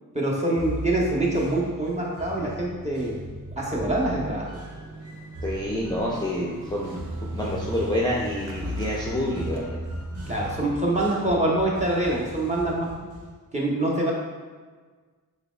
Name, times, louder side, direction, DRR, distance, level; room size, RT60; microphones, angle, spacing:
voice 1, 0.1-3.1 3.6-4.6 10.3-12.9 13.5-14.1, right 1 dB, 20° right, -4 dB, 0.8 m, -25 dB
sound 1, 0.6-13.3, equal, 40° right, 0.7 m, -37 dB
Motorcycle, 4.2-11.0, right 2 dB, 80° right, 0.5 m, -44 dB
voice 2, 5.4-9.8, left 1 dB, 10° left, -5 dB, 0.5 m, -28 dB
4.0 x 3.1 x 2.3 m, 1.4 s
cardioid pair, 50°, 36 cm